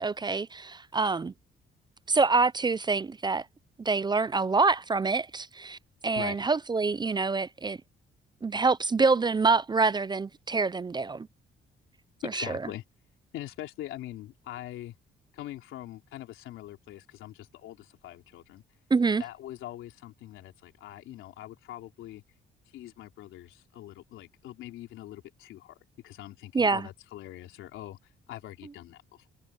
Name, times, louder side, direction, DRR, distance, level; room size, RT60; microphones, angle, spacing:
voice 1, 0.0-1.3 2.1-3.4 3.8-7.8 8.4-11.3 12.3-12.6 18.9-19.2 26.5-26.9, right 4 dB, 20° right, 0.5 m, -26 dB
voice 2, 12.2-12.8 13.3-14.9 15.3-18.6 19.2-22.2 22.7-25.8 26.0-28.0 28.3-29.3, left 14 dB, 90° left, 3.4 m, -43 dB
cardioid pair, 90°, 20 cm